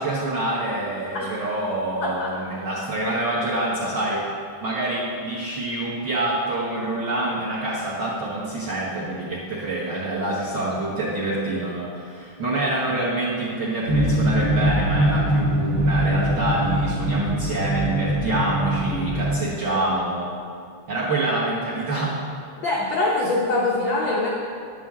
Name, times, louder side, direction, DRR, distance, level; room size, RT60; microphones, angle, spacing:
voice 1, 0.0-4.3 4.6-20.3 20.9-22.2, right 2 dB, 55° right, -7 dB, 1.3 m, -26 dB
voice 2, 2.0-2.4 22.6-24.3, left 2 dB, 85° left, -3 dB, 1.0 m, -23 dB
sound 1, 13.9-19.4, right 1 dB, 85° right, 0.8 m, -22 dB
10.0 x 9.0 x 3.6 m, 2.3 s
omnidirectional pair, 3.6 m